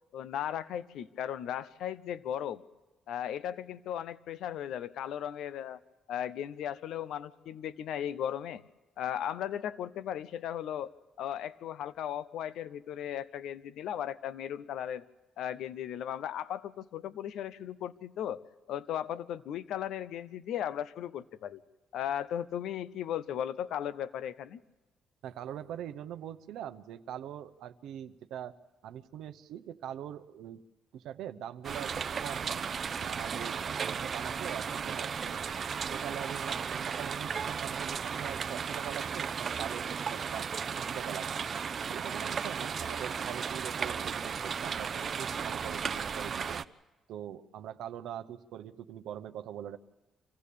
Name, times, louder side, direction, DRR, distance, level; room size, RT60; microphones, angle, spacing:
voice 1, 0.1-2.6 3.1-5.8 6.1-8.6 9.0-10.9 11.2-15.0 15.4-18.4 18.7-21.6 21.9-24.6, left 10 dB, 80° left, 16 dB, 0.6 m, -36 dB
voice 2, 25.2-28.6 28.8-30.6 30.9-32.7 33.0-35.4 35.7-40.5 40.7-41.5 41.9-46.6 47.1-49.8, right 10 dB, 85° right, 9 dB, 0.8 m, -43 dB
sound 1, 31.6-46.6, right 6 dB, 50° right, 0.6 m, -35 dB
26.0 x 15.5 x 8.4 m, 1.1 s
cardioid pair, 90°, 0 cm